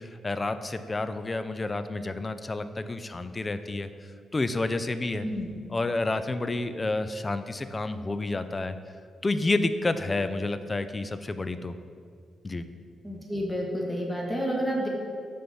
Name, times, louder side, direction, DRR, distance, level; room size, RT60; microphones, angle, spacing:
voice 1, 0.0-3.9 4.3-5.3 5.7-8.8 9.2-11.7 12.4-12.7, left 2 dB, 25° left, 11 dB, 0.3 m, -29 dB
voice 2, 13.0-14.9, equal, ahead, -2 dB, 1.2 m, -30 dB
5.8 x 3.4 x 5.3 m, 2.1 s
cardioid pair, 80°, 0 cm